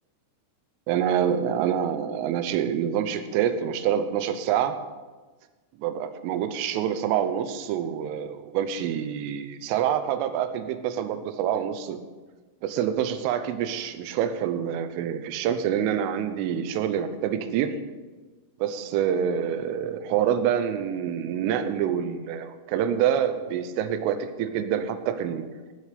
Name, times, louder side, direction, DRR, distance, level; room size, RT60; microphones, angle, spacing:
voice 1, 0.9-4.8 5.8-12.1 12.6-17.8 18.6-25.5, right 9 dB, 85° right, 9 dB, 3.4 m, -26 dB
16.5 x 7.5 x 6.8 m, 1.3 s
omnidirectional pair, 5.7 m